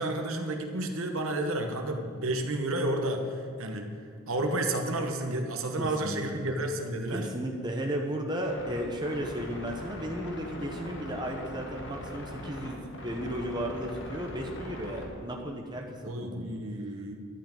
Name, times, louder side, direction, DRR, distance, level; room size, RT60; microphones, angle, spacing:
voice 1, 0.0-3.9 4.3-7.3 16.0-17.2, right 1 dB, 65° right, 4 dB, 1.2 m, -31 dB
voice 2, 5.8-6.2 7.1-16.5, equal, 20° right, 1 dB, 0.9 m, -34 dB
sound 1, 8.4-15.1, left 1 dB, 55° left, 1.8 m, -41 dB
11.5 x 5.8 x 8.8 m, 2.3 s
head